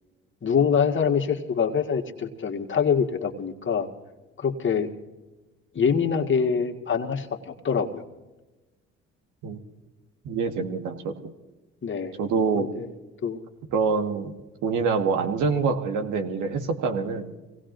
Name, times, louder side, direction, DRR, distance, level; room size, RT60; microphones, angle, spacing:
voice 1, 0.4-3.9 4.4-4.9 5.7-8.0 11.8-12.1 12.5-12.9 13.2-13.4, left 6 dB, 35° left, 2 dB, 1.7 m, -25 dB
voice 2, 10.2-11.3 12.2-12.7 13.7-14.3 14.6-17.3, right 5 dB, 70° right, 5 dB, 1.6 m, -25 dB
26.0 x 18.0 x 2.6 m, 1.1 s
hypercardioid pair, 55°, 32 cm